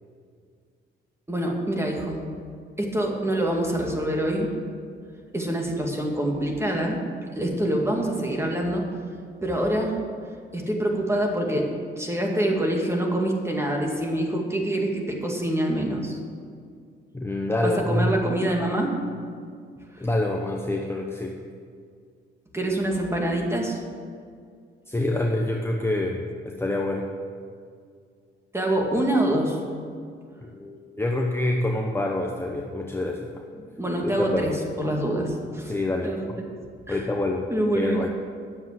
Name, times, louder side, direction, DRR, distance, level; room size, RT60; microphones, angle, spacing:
voice 1, 1.3-2.2 2.8-4.5 5.3-7.0 7.4-8.8 9.4-10.0 10.5-11.7 12.0-16.2 17.6-18.9 22.5-23.8 28.5-29.6 33.8-35.7 36.0-36.3 36.9-37.0 37.5-38.0, right 1 dB, 15° right, 0 dB, 2.2 m, -25 dB
voice 2, 17.1-18.1 20.0-21.3 24.9-26.2 26.4-27.1 30.4-33.4 34.3-34.5 35.6-36.4 36.9-37.4 37.7-38.1, left 1 dB, 10° left, 0 dB, 0.9 m, -26 dB
10.0 x 7.5 x 7.5 m, 2.2 s
cardioid pair, 90°, 20 cm